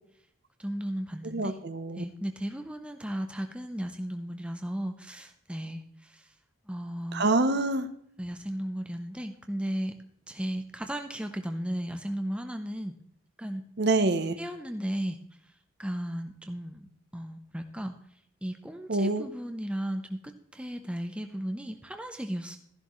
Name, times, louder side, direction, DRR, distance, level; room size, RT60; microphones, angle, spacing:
voice 1, 0.6-1.6 2.0-6.2 6.7-7.3 8.2-10.0 10.3-13.0 13.4-13.6 14.4-15.2 15.8-17.9 18.4-20.2 20.5-22.6, equal, 5° right, 6 dB, 0.6 m, -35 dB
voice 2, 1.2-2.0 7.1-7.9 13.8-14.4 18.9-19.3, right 2 dB, 50° right, 11 dB, 0.7 m, -26 dB
13.5 x 11.5 x 3.1 m, 0.70 s
head